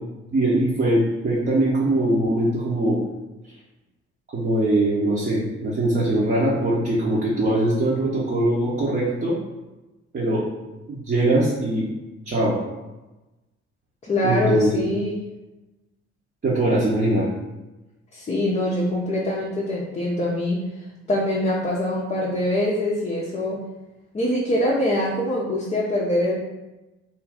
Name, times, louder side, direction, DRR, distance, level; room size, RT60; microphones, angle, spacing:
voice 1, 0.3-3.0 4.3-9.4 10.1-10.4 10.9-11.9 12.3-12.6 14.2-14.8 16.4-17.3, right 1 dB, 30° right, -6 dB, 0.8 m, -21 dB
voice 2, 14.0-15.2 18.1-20.6 21.1-23.6 24.1-26.4, left 1 dB, 20° left, -4 dB, 0.5 m, -23 dB
2.6 x 2.3 x 3.4 m, 1.1 s
figure-of-eight pair, 45°, 33 cm